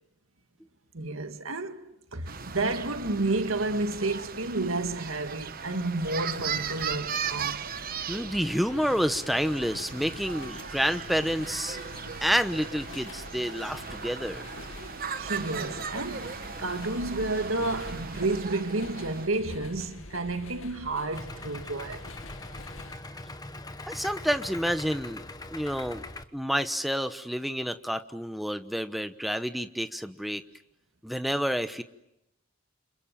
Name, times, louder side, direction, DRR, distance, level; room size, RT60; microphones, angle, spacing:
voice 1, 0.9-1.8 2.1-7.6 15.2-22.1 22.4-23.0, right 2 dB, 85° right, 1.9 m, -31 dB
sound 1, 2.2-19.3, right 6 dB, 45° right, 1.1 m, -37 dB
sound 2, 6.0-23.0, left 2 dB, 80° left, 2.2 m, -46 dB
voice 2, 8.1-11.8 12.2-14.5 23.9-26.0 26.3-30.4 31.0-31.8, equal, ahead, 1.0 m, -29 dB
Idling, 21.1-26.2, left 2 dB, 20° left, 1.2 m, -42 dB
29.0 x 27.0 x 7.5 m
head